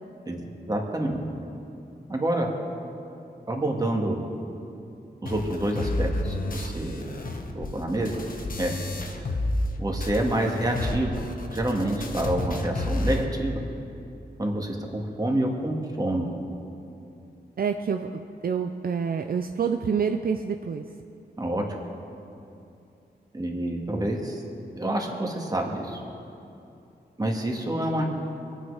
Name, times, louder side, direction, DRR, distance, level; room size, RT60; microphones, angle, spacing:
voice 1, 0.7-1.2 2.1-2.5 3.5-4.2 5.2-7.1 7.6-8.2 8.6-8.8 9.8-11.2 11.5-13.6 14.4-16.3 21.4-21.6 23.3-24.4 24.8-26.0 27.2-28.0, right 1 dB, 20° right, 0 dB, 2.2 m, -27 dB
sound 1, 5.3-9.7 10.0-13.3, left 2 dB, 55° left, 1.3 m, -31 dB
voice 2, 17.6-20.8, right 6 dB, 60° right, 6 dB, 0.6 m, -27 dB
23.5 x 9.2 x 5.0 m, 2.7 s
wide cardioid pair, 85°, 17 cm